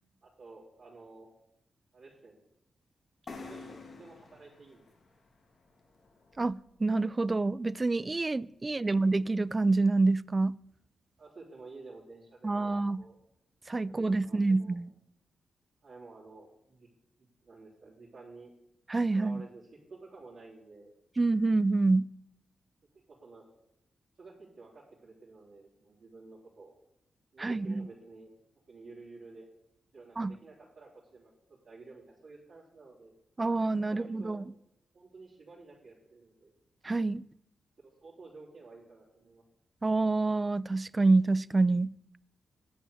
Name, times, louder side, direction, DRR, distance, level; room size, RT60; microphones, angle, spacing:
voice 1, 0.2-1.3 1.9-2.4 3.3-4.8 11.2-13.2 13.8-14.8 15.8-16.9 17.2-18.5 19.1-20.9 22.9-23.5 24.2-26.7 27.3-28.3 28.7-29.5 29.9-33.1 33.8-34.4 34.9-36.5 37.8-39.4, right 3 dB, 60° right, 3.4 m, -52 dB
sound 1, 3.3-6.9, left 4 dB, 55° left, 1.7 m, -49 dB
voice 2, 6.4-10.6 12.4-13.0 13.7-14.9 18.9-19.4 21.2-22.1 27.4-27.9 30.2-30.4 33.4-34.4 36.8-37.3 39.8-41.9, right 3 dB, 30° right, 0.3 m, -27 dB
9.9 x 7.5 x 6.5 m
cardioid pair, 65°, 0 cm